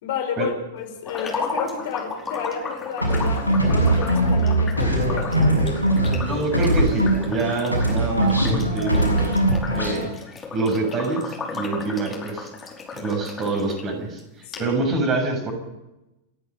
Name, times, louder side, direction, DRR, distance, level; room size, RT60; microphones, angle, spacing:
voice 1, 0.0-5.6 14.5-14.7, left 6 dB, 55° left, 3 dB, 5.0 m, -31 dB
sound 1, 1.0-13.8 14.2-14.3 14.5-14.6, left 4 dB, 20° left, 5.0 m, -34 dB
sound 2, 3.0-7.4 7.7-10.1, right 1 dB, 90° right, 6.8 m, -21 dB
voice 2, 6.3-9.3 9.7-10.1 10.5-12.5 13.0-14.2 14.6-15.5, right 3 dB, 30° right, 2 dB, 7.8 m, -25 dB
30.0 x 10.5 x 9.4 m, 0.96 s
figure-of-eight pair, 90°, 0 cm